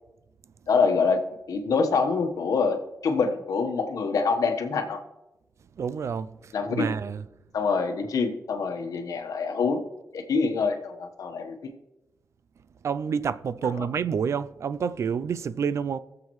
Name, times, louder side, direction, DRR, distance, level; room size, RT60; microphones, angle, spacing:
voice 1, 0.7-1.2 1.5-2.8 3.0-5.0 6.5-6.9 7.5-9.8 10.1-11.5 13.8-13.9, left 4 dB, 75° left, 1.2 m, -25 dB
voice 2, 5.8-7.2 12.8-16.0, right 6 dB, 50° right, 0.4 m, -28 dB
21.5 x 7.4 x 3.1 m
wide cardioid pair, 175°, 6 cm